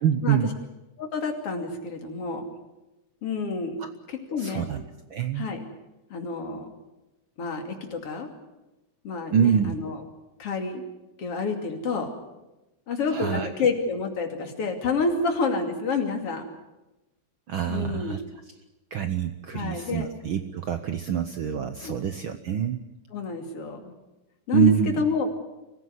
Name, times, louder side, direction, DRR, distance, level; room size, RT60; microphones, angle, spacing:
voice 1, 0.0-0.5 4.4-4.8 5.1-5.5 9.3-9.7 13.1-13.5 17.5-18.2 18.9-22.8 24.5-25.0, right 8 dB, 70° right, 9 dB, 1.2 m, -25 dB
voice 2, 1.0-2.4 3.2-3.8 4.1-4.7 5.4-5.6 6.1-6.7 7.4-8.3 9.0-10.0 10.4-10.8 11.2-12.1 12.9-16.4 17.7-18.2 19.5-20.1 21.8-22.0 23.1-24.0 24.5-25.3, left 4 dB, 50° left, 4 dB, 3.6 m, -28 dB
24.5 x 15.5 x 9.5 m, 1.0 s
omnidirectional pair, 3.4 m